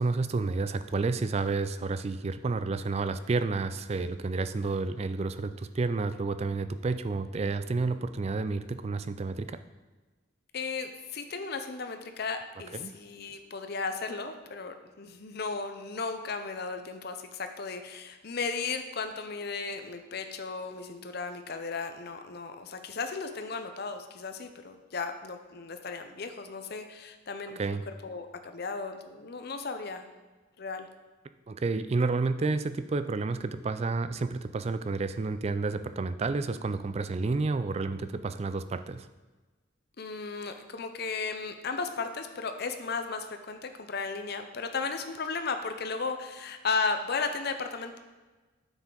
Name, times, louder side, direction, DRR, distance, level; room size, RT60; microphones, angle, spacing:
voice 1, 0.0-9.6 12.7-12.9 27.6-27.8 31.5-39.1, right 3 dB, 30° right, 12 dB, 0.3 m, -30 dB
voice 2, 10.5-27.6 28.0-30.1 30.6-30.9 40.0-48.0, left 4 dB, 50° left, 7 dB, 0.6 m, -35 dB
9.1 x 7.2 x 3.9 m, 1.3 s
head